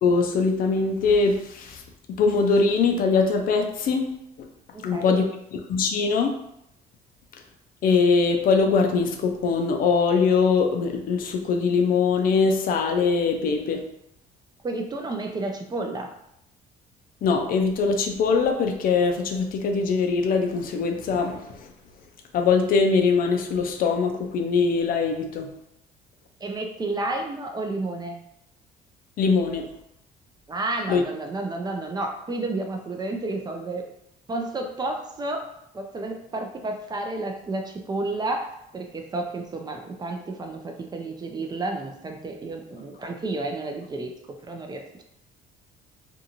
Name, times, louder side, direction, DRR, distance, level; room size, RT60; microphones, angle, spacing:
voice 1, 0.0-1.8 2.2-4.1 4.8-5.2 5.7-6.3 7.8-13.8 17.2-21.4 22.3-25.5 29.2-29.7 30.9-31.0, left 4 dB, 55° left, 4 dB, 0.5 m, -22 dB
voice 2, 4.7-5.2 14.6-16.1 26.4-28.3 30.5-33.8 34.3-35.5 35.7-45.0, right 2 dB, 25° right, 3 dB, 0.4 m, -31 dB
2.6 x 2.5 x 2.8 m, 0.77 s
cardioid pair, 110°, 17 cm